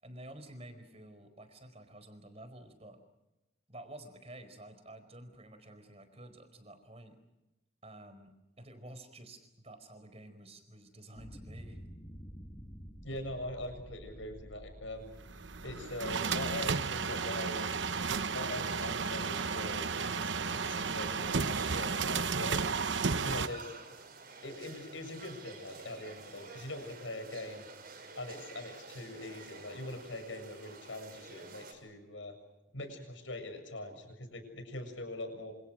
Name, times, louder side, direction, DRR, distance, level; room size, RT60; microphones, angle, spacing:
voice 1, 0.0-3.0 3.7-7.2 7.8-11.8, right 1 dB, 30° right, 9 dB, 4.6 m, -51 dB
sound 1, 11.2-16.9, equal, 20° left, 2.2 m, -50 dB
voice 2, 13.0-15.1 15.6-17.8 18.3-22.6 23.2-23.7 24.4-27.7 28.2-32.3 32.7-35.5, left 1 dB, 70° left, 7 dB, 7.3 m, -42 dB
sound 2, 15.3-23.5, right 5 dB, 65° right, 1.0 m, -33 dB
sound 3, 21.4-31.7, right 4 dB, 50° right, 6.0 m, -50 dB
28.0 x 28.0 x 6.4 m, 0.95 s
head